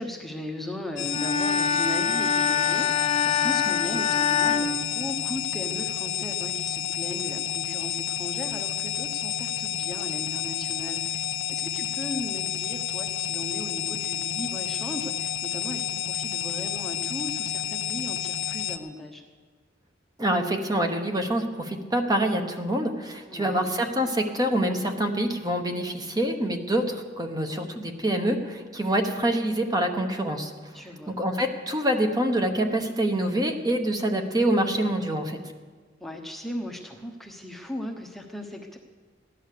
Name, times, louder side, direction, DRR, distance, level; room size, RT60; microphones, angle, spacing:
voice 1, 0.0-11.2 11.5-19.2 23.3-23.7 30.7-31.2 36.0-38.8, left 1 dB, ahead, 2 dB, 1.0 m, -37 dB
sound 1, 1.0-18.8, left 10 dB, 70° left, 0.7 m, -30 dB
Bowed string instrument, 1.1-5.6, left 7 dB, 30° left, 0.6 m, -25 dB
voice 2, 20.2-30.5 31.1-35.4, right 1 dB, 20° right, 4 dB, 1.1 m, -26 dB
16.0 x 11.0 x 6.7 m, 1.4 s
head